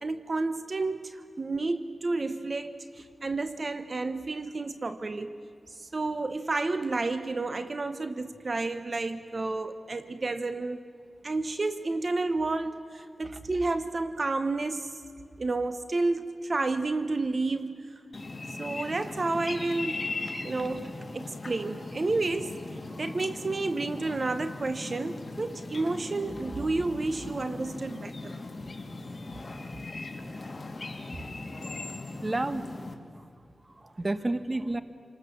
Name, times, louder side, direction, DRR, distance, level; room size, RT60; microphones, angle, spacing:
voice 1, 0.0-5.4 5.8-10.8 11.2-14.9 15.4-17.9 18.5-20.0 20.4-22.6 23.0-28.3, right 3 dB, 50° right, 1.0 m, -31 dB
sound 1, 18.1-32.9, left 3 dB, 40° left, 2.6 m, -39 dB
voice 2, 32.2-33.3 33.6-34.8, right 2 dB, 35° right, 1.1 m, -32 dB
29.0 x 19.5 x 7.1 m
cardioid pair, 50°, 0 cm